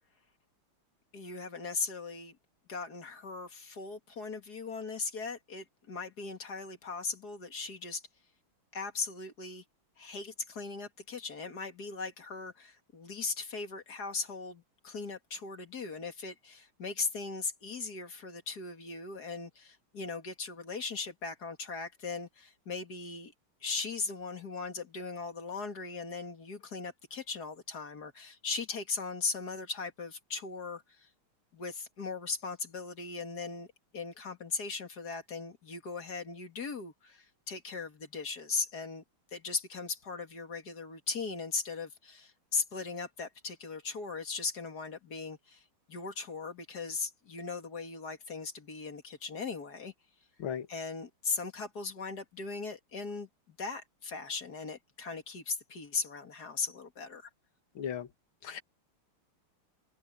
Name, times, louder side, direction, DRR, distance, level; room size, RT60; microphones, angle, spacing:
voice 1, 1.1-2.4 2.7-8.0 8.7-9.6 10.0-23.3 23.6-31.1 31.5-33.7 33.9-39.0 39.3-49.9 50.7-57.3, left 4 dB, 45° left, 2.5 m, -38 dB
voice 2, 57.8-58.1 58.4-58.6, left 8 dB, 70° left, 2.2 m, -36 dB
omnidirectional pair, 2.4 m